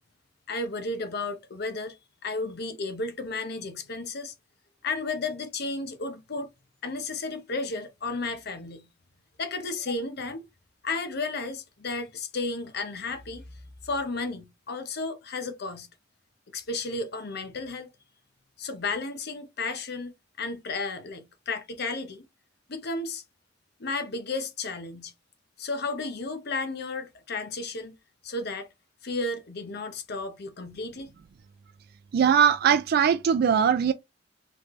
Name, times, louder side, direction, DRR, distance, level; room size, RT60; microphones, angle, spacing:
voice 1, 0.5-4.3 4.8-6.5 6.8-8.8 9.4-10.4 10.8-13.6 13.8-15.9 16.5-17.9 18.6-20.1 20.4-22.2 22.7-23.2 23.8-25.1 25.6-28.0 28.2-28.7 29.0-31.1, left 3 dB, 60° left, 0.8 m, -33 dB
voice 2, 32.1-33.9, right 7 dB, 55° right, 0.3 m, -21 dB
4.1 x 3.2 x 3.1 m
head